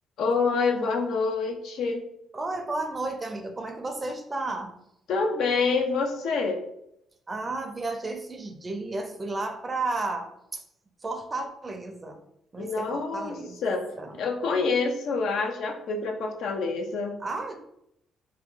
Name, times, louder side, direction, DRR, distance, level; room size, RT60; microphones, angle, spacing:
voice 1, 0.2-2.0 5.1-6.6 12.6-13.8 14.2-17.1, left 4 dB, 70° left, 3 dB, 0.5 m, -27 dB
voice 2, 2.3-4.8 7.3-10.6 11.0-12.2 12.5-13.6 14.0-14.2 17.2-17.6, right 2 dB, 20° right, 5 dB, 0.4 m, -33 dB
2.8 x 2.2 x 3.7 m, 0.78 s
cardioid pair, 120°, 0 cm